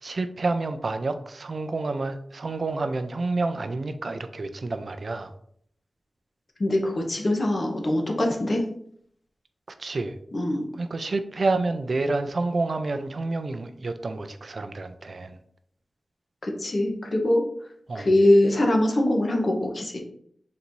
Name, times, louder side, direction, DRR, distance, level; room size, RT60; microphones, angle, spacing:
voice 1, 0.0-5.3 9.8-10.2 10.7-15.4 17.9-18.1, right 3 dB, 55° right, 9 dB, 0.4 m, -29 dB
voice 2, 6.6-8.6 10.3-10.7 16.4-17.4 17.9-20.0, left 1 dB, 45° left, 1 dB, 0.9 m, -22 dB
4.0 x 2.6 x 4.5 m, 0.65 s
wide cardioid pair, 115°, 0 cm